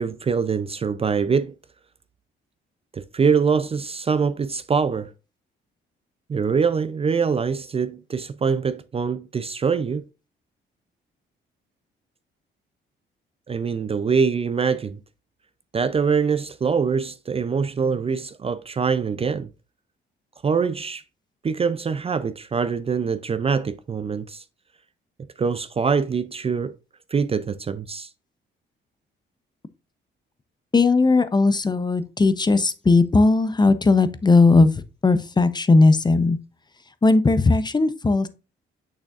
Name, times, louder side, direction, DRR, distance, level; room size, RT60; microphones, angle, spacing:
voice 1, 0.0-1.5 2.9-5.1 6.3-10.0 13.5-15.0 15.7-19.5 20.4-21.0 21.4-24.4 25.4-26.7 27.1-28.1, right 5 dB, 30° right, 0.4 m, -24 dB
voice 2, 30.7-36.4 37.0-38.3, left 3 dB, 20° left, 0.6 m, -18 dB
6.5 x 6.0 x 2.4 m
cardioid pair, 90°, 20 cm